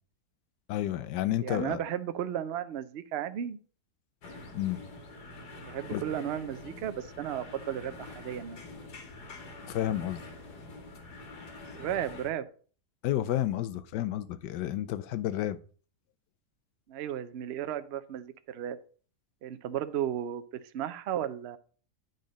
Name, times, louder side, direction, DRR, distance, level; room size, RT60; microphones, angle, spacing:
voice 1, 0.7-1.8 4.5-4.8 5.9-6.0 9.7-10.2 13.0-15.6, left 12 dB, 90° left, 1.3 m, -31 dB
voice 2, 1.4-3.6 5.6-8.6 11.7-12.5 16.9-18.8 19.4-20.4 20.7-21.6, right 10 dB, 80° right, 0.5 m, -34 dB
sound 1, 4.2-12.3, left 2 dB, 75° left, 1.8 m, -46 dB
9.1 x 4.1 x 5.1 m
omnidirectional pair, 1.8 m